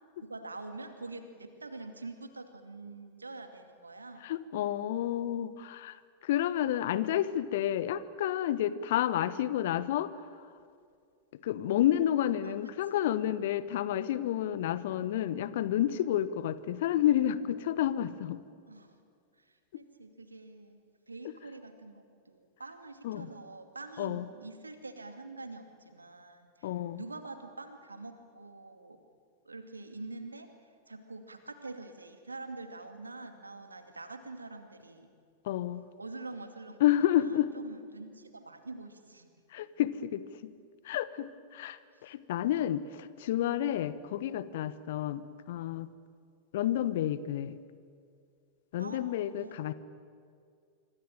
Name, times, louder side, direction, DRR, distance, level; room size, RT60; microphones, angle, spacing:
voice 1, 0.2-4.3 12.4-12.6 18.7-19.0 19.4-29.0 29.4-30.5 30.9-35.1 36.0-36.8 37.2-39.3 48.8-49.0 49.4-49.5, right 3 dB, 80° right, 7 dB, 2.5 m, -45 dB
voice 2, 4.2-10.5 11.3-18.4 23.0-23.3 24.0-24.3 26.6-27.0 35.4-35.9 36.8-37.5 39.5-40.5 40.8-45.9 46.5-47.6 48.7-49.7, left 12 dB, 55° left, 16 dB, 1.2 m, -30 dB
25.5 x 24.5 x 9.0 m, 2.2 s
figure-of-eight pair, 90°, 0 cm